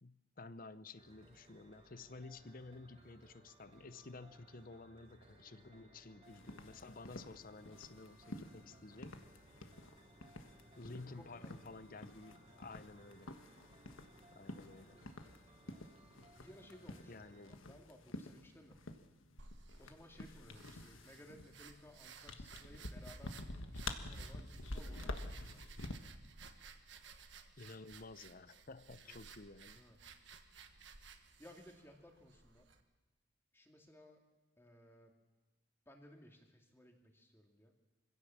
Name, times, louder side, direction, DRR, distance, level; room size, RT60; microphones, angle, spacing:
voice 1, 0.0-9.2 10.8-13.3 14.3-15.0 17.1-17.6 27.6-29.8, left 3 dB, 45° left, 14 dB, 0.8 m, -53 dB
sound 1, 1.0-17.6, right 1 dB, 25° right, 2.4 m, -63 dB
sound 2, 6.3-25.9, left 2 dB, 85° left, 1.5 m, -49 dB
voice 2, 11.0-11.6 14.7-15.0 16.4-18.8 19.8-25.7 29.0-29.2 29.7-30.0 31.4-32.7 33.5-34.2 34.6-35.1 35.9-37.7, left 1 dB, 10° left, 2 dB, 2.4 m, -60 dB
sound 3, 19.4-32.8, right 4 dB, 65° right, 1.4 m, -57 dB
24.5 x 16.5 x 7.3 m, 1.1 s
head